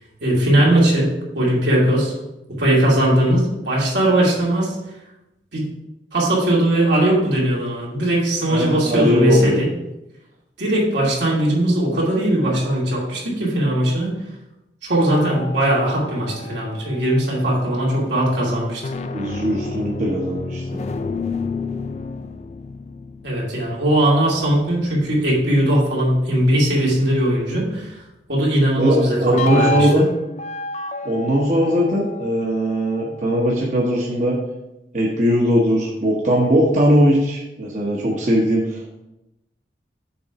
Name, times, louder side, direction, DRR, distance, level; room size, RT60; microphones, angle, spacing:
voice 1, 0.2-1.1 1.3-2.1 2.6-4.8 5.5-5.6 6.1-9.7 10.6-14.1 14.8-18.8 23.2-28.0 28.3-30.0, right 1 dB, 80° right, -4 dB, 2.5 m, -19 dB
voice 2, 8.5-9.6 19.1-20.6 28.8-30.1 31.0-34.4 34.9-39.0, equal, 45° right, -3 dB, 1.0 m, -19 dB
sound 1, 15.0-17.6 18.6-25.5 29.3-33.5, left 3 dB, 40° left, 0.3 m, -30 dB
7.0 x 3.8 x 5.7 m, 0.92 s
head